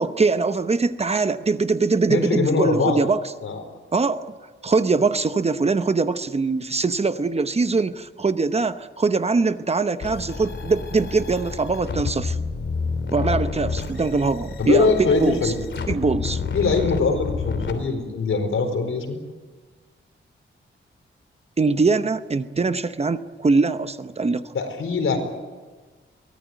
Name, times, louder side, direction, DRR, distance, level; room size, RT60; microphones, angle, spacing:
voice 1, 0.0-3.2 3.9-4.3 4.6-12.4 13.1-15.5 15.9-16.4 21.6-24.5, right 4 dB, 30° right, 11 dB, 0.8 m, -22 dB
voice 2, 2.1-3.0 3.4-3.6 13.2-13.4 14.6-15.6 16.5-19.2 24.5-25.2, left 4 dB, 80° left, 5 dB, 4.6 m, -22 dB
sound 1, 10.0-17.7, left 4 dB, 60° left, 3.1 m, -29 dB
23.0 x 18.0 x 9.3 m, 1.4 s
wide cardioid pair, 150°, 21 cm